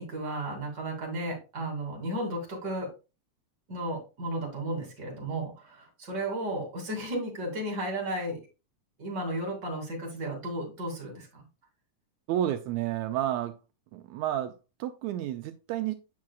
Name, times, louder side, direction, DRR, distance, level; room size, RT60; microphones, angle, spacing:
voice 1, 0.0-2.9 3.7-8.4 9.0-11.4, right 1 dB, 35° right, 2.9 m, -34 dB
voice 2, 12.3-13.6 13.9-15.9, right 12 dB, 80° right, 1.7 m, -31 dB
8.4 x 6.1 x 2.3 m
omnidirectional pair, 3.6 m